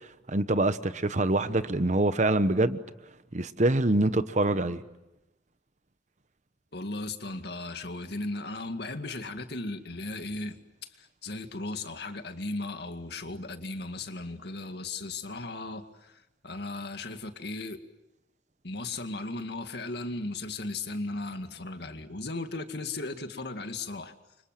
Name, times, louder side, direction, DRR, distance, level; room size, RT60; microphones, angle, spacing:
voice 1, 0.3-2.8 3.3-4.8, right 2 dB, 40° right, 1.0 m, -25 dB
voice 2, 6.7-17.8 18.6-24.1, left 2 dB, 60° left, 2.1 m, -36 dB
29.5 x 25.5 x 7.6 m
head